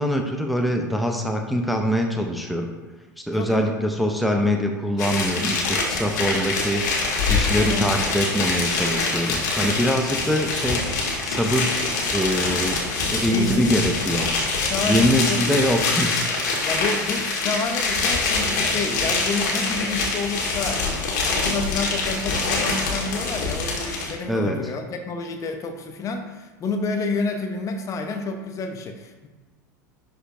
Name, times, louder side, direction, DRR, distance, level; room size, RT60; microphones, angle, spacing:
voice 1, 0.0-2.7 3.2-6.8 7.3-10.9 11.2-11.8 12.1-12.8 13.1-14.3 14.9-16.2 24.3-24.6, equal, ahead, 2 dB, 0.7 m, -23 dB
voice 2, 3.3-3.7 7.5-7.9 13.3-13.8 14.7-15.6 16.7-20.9 21.2-29.3, left 3 dB, 35° left, 5 dB, 0.8 m, -29 dB
sound 1, 5.0-24.1, left 3 dB, 65° left, 1.7 m, -25 dB
11.0 x 4.5 x 2.6 m, 1.2 s
figure-of-eight pair, 80°, 10 cm